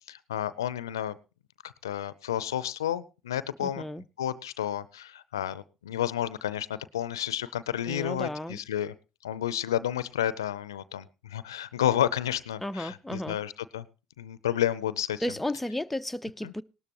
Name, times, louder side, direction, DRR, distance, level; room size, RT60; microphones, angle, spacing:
voice 1, 0.1-1.2 1.6-3.8 4.2-8.9 9.2-13.8 14.2-15.2 16.4-16.5, left 11 dB, 90° left, 0.5 m, -31 dB
voice 2, 3.6-4.0 7.9-8.6 12.6-13.4 15.2-16.6, left 1 dB, 5° left, 0.6 m, -33 dB
18.0 x 12.5 x 3.0 m
hypercardioid pair, 60°, 2 cm